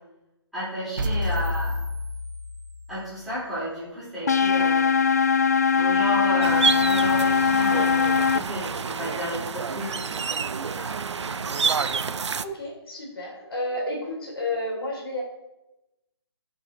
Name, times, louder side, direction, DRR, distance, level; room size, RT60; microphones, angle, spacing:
voice 1, 0.5-1.8 2.9-4.9 5.7-11.7, equal, ahead, -13 dB, 3.3 m, -33 dB
sound 1, 1.0-3.0, left 2 dB, 45° right, 1.2 m, -29 dB
sound 2, 4.3-8.4, left 6 dB, 35° left, 0.4 m, -21 dB
sound 3, 6.4-12.4, right 6 dB, 85° right, 0.7 m, -28 dB
voice 2, 12.4-15.2, left 1 dB, 55° left, -1 dB, 3.7 m, -31 dB
16.0 x 5.5 x 3.9 m, 0.96 s
hypercardioid pair, 175°, 15 cm